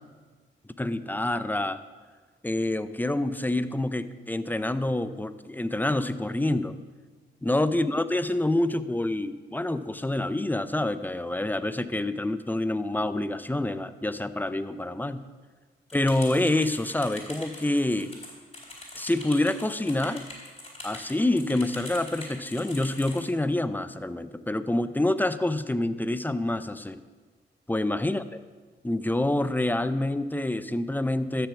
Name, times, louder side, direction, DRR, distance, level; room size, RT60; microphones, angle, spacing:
voice 1, 0.8-1.8 2.4-6.8 7.4-15.2 15.9-18.1 18.9-20.3 20.8-27.0 27.7-28.4 28.8-31.5, left 1 dB, 10° left, 13 dB, 0.6 m, -27 dB
sound 1, 15.9-23.3, left 2 dB, 30° left, 4.3 m, -43 dB
13.5 x 6.9 x 7.2 m, 1.4 s
cardioid pair, 75°, 21 cm